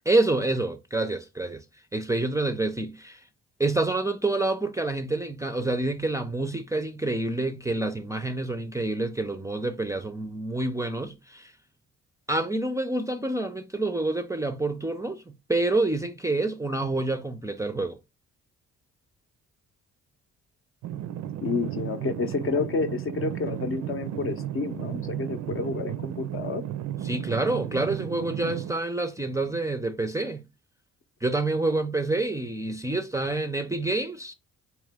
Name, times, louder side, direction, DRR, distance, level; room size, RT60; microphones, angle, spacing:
voice 1, 0.1-1.6 1.9-3.2 3.6-11.5 12.3-18.0 27.0-30.5 31.2-34.3, right 2 dB, 10° right, 0.4 m, -27 dB
sound 1, 20.8-28.7, right 11 dB, 70° right, 0.4 m, -34 dB
voice 2, 21.4-26.6, left 4 dB, 45° left, 0.6 m, -30 dB
3.7 x 3.0 x 3.3 m
cardioid pair, 90°, 30 cm